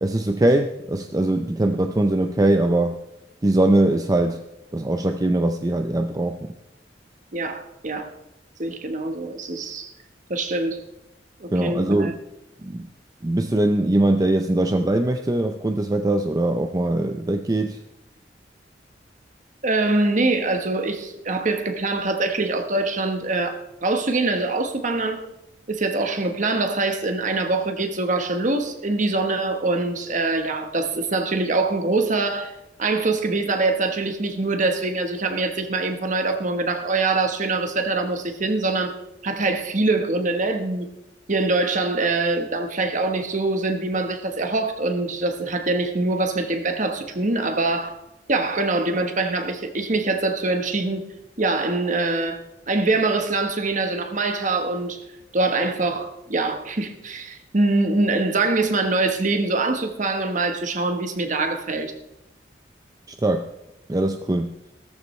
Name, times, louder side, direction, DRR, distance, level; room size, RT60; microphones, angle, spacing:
voice 1, 0.0-3.0 3.4-4.4 4.7-6.4 11.5-12.1 12.6-12.9 13.2-17.8 63.2-63.5 63.9-64.5, right 1 dB, 20° right, 6 dB, 0.5 m, -21 dB
voice 2, 7.3-8.1 8.6-9.9 10.3-10.8 11.4-12.1 19.6-25.2 25.7-38.9 39.2-40.9 41.3-47.9 48.3-51.0 51.4-52.4 52.7-55.0 55.3-61.9, right 3 dB, 45° right, 6 dB, 1.2 m, -24 dB
16.5 x 13.5 x 3.2 m, 0.90 s
head